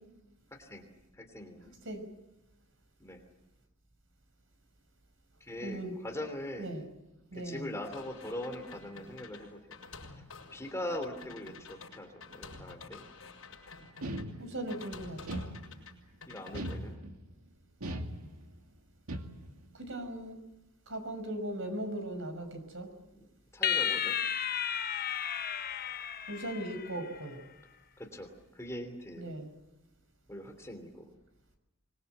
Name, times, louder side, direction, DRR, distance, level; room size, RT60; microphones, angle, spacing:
voice 1, 0.5-0.9 1.1-1.8 3.0-3.2 5.4-6.7 7.3-9.8 10.5-13.1 16.3-17.0 23.1-24.2 26.9-27.1 28.0-29.3 30.3-31.1, left 1 dB, 15° left, 4 dB, 3.1 m, -42 dB
voice 2, 5.6-5.9 6.6-6.8 7.3-7.8 14.4-15.4 19.8-20.4 20.9-22.9 26.3-27.4 29.2-29.5, right 1 dB, 60° right, 7 dB, 5.7 m, -38 dB
sound 1, 7.8-14.2 14.7-15.9 16.2-16.8, left 4 dB, 65° left, 6.4 m, -49 dB
sound 2, 14.0-14.8 15.3-16.0 16.5-17.3 17.8-18.6 19.1-19.7, right 1 dB, 80° right, 2.4 m, -39 dB
sound 3, 23.6-27.2, left 9 dB, 40° left, 0.8 m, -33 dB
25.0 x 22.0 x 8.1 m, 0.93 s
head